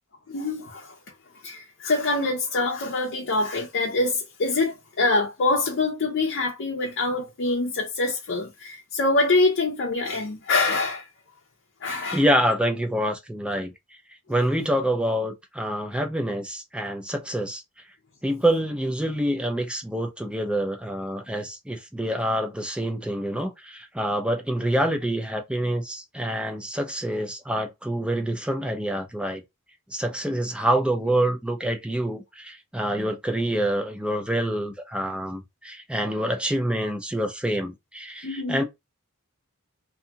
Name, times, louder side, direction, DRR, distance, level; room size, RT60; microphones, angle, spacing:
voice 1, 0.3-0.9 1.4-11.1 11.8-12.2 38.2-38.6, left 3 dB, 55° left, 0.6 m, -25 dB
voice 2, 12.1-13.7 14.3-17.6 18.2-29.4 29.9-38.6, right 1 dB, 5° right, 0.5 m, -26 dB
2.6 x 2.3 x 2.7 m
head